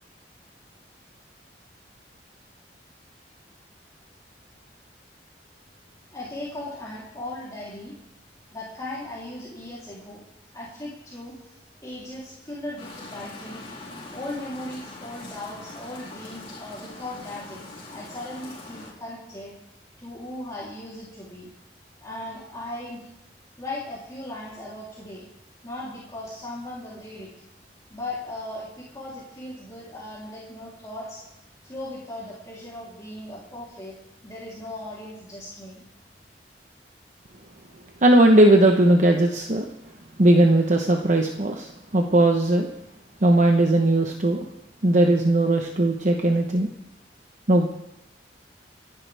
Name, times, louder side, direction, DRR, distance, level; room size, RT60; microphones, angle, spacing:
voice 1, 6.1-7.9 8.5-10.2 10.5-13.6 14.1-19.5 20.0-21.5 22.0-23.1 23.6-25.3 25.6-27.3 27.9-31.2 31.6-33.9 34.2-35.8, left 1 dB, 20° left, -7 dB, 3.3 m, -37 dB
sound 1, 12.8-18.9, left 2 dB, 35° left, 4.2 m, -42 dB
voice 2, 38.0-39.7 40.2-42.7 43.2-44.5 44.8-46.7 47.5-47.7, right 1 dB, 45° right, 3 dB, 1.0 m, -18 dB
28.5 x 10.5 x 3.4 m, 0.88 s
head